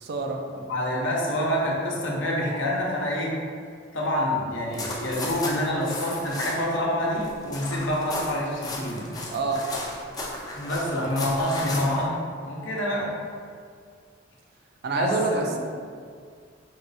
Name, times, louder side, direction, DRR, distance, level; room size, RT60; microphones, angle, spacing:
voice 1, 0.0-0.4 9.3-9.7 14.8-15.6, right 4 dB, 55° right, 3 dB, 0.4 m, -26 dB
voice 2, 0.5-3.4 3.9-9.1 10.5-13.1 14.9-15.6, left 1 dB, 70° left, -3 dB, 0.8 m, -27 dB
sound 1, 4.7-6.8 7.0-12.1, left 2 dB, 20° left, 0.5 m, -35 dB
4.6 x 3.0 x 2.7 m, 2.1 s
head